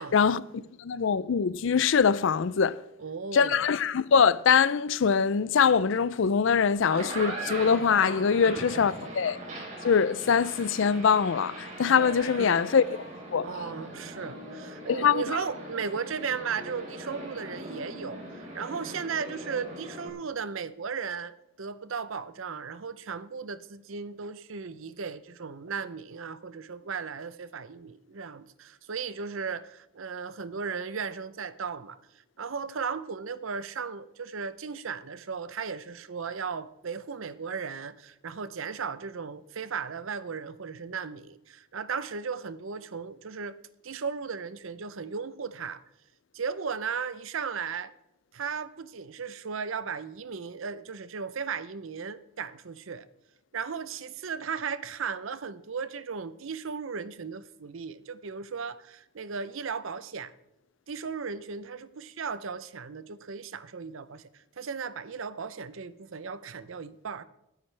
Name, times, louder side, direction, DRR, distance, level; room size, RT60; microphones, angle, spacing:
voice 1, 0.0-2.8 3.3-9.4 9.8-12.8 13.3-13.5 14.9-15.2, left 6 dB, 65° left, 0.4 m, -23 dB
voice 2, 3.0-3.7 8.4-8.7 12.3-12.6 13.4-32.0 32.4-43.6 43.8-45.8 46.3-47.9 48.3-53.1 53.5-60.3 60.9-67.2, right 5 dB, 70° right, 0.6 m, -36 dB
sound 1, 6.7-20.1, right 1 dB, 35° right, 3.5 m, -40 dB
22.0 x 9.7 x 3.3 m
head